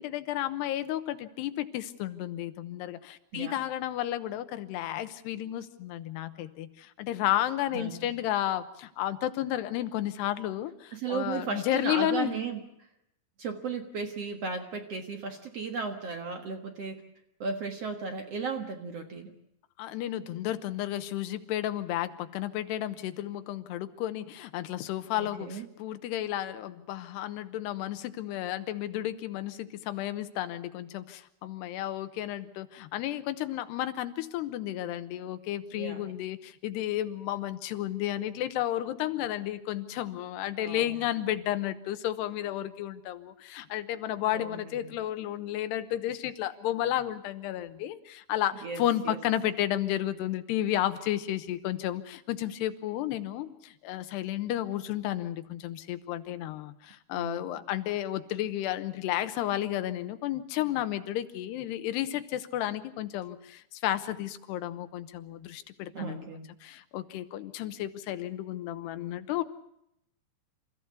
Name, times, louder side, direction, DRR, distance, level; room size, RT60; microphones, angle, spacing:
voice 1, 0.0-12.4 19.8-66.3 66.6-69.4, left 13 dB, 75° left, 11 dB, 2.9 m, -32 dB
voice 2, 10.9-12.6 13.4-17.0 17.4-19.3 25.2-25.7 35.7-36.0 40.6-40.9 44.3-44.9 48.6-49.2 57.1-57.6 65.9-66.5, right 5 dB, 65° right, 5 dB, 1.5 m, -35 dB
28.5 x 15.0 x 8.2 m, 0.80 s
omnidirectional pair, 5.2 m